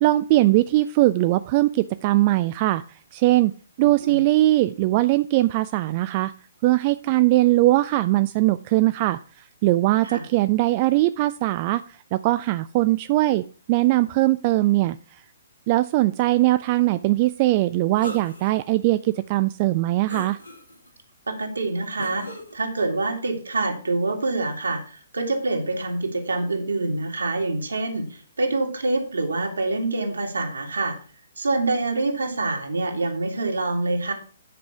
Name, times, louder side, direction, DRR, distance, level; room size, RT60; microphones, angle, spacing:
voice 1, 0.0-2.8 3.1-3.5 3.8-6.3 6.6-9.2 9.6-13.4 13.7-15.0 15.7-20.4, right 17 dB, 30° right, 12 dB, 0.3 m, -20 dB
voice 2, 3.8-4.2 10.0-10.2 21.3-31.0 31.4-34.1, right 2 dB, 70° right, 3 dB, 2.2 m, -26 dB
sound 1, 18.0-18.6 19.2-19.3 20.1-20.9 22.0-22.5, equal, 85° left, 2.8 m, -37 dB
9.4 x 5.3 x 6.0 m, 0.38 s
figure-of-eight pair, 125°, 0 cm